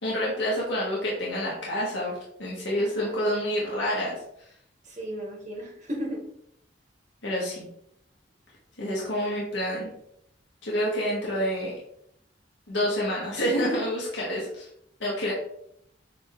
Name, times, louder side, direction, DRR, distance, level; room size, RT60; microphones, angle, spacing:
voice 1, 0.0-4.2 7.2-7.6 8.8-9.9 10.6-11.7 12.7-14.7 15.0-15.3, equal, 85° left, -5 dB, 1.7 m, -28 dB
voice 2, 2.8-3.2 4.8-6.2, equal, 40° right, -2 dB, 1.8 m, -35 dB
7.8 x 3.6 x 3.8 m, 0.74 s
head